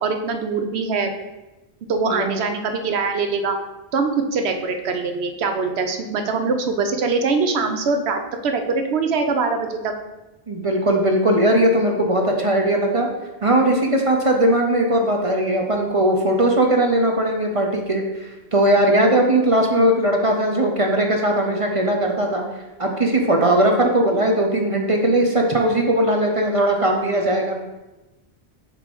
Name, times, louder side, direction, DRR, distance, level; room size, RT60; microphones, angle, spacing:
voice 1, 0.0-1.1 1.9-3.6 3.9-9.9, right 4 dB, 75° right, 6 dB, 1.0 m, -23 dB
voice 2, 2.0-2.3 10.5-13.1 13.4-22.4 22.8-27.6, right 1 dB, 40° right, 2 dB, 0.6 m, -19 dB
6.4 x 3.4 x 5.2 m, 1.1 s
omnidirectional pair, 1.1 m